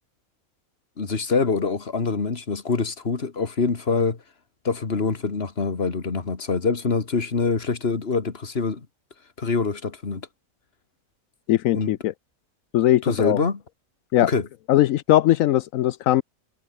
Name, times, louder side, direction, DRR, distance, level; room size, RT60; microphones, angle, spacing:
voice 1, 1.0-4.2 4.6-8.9 9.4-10.3 11.7-11.9 13.0-13.6 14.2-14.5, left 4 dB, 45° left, 2.3 m, -25 dB
voice 2, 11.5-12.1 12.7-13.4 14.1-14.3 14.7-16.2, left 14 dB, 75° left, 1.0 m, -19 dB
omnidirectional pair, 1.4 m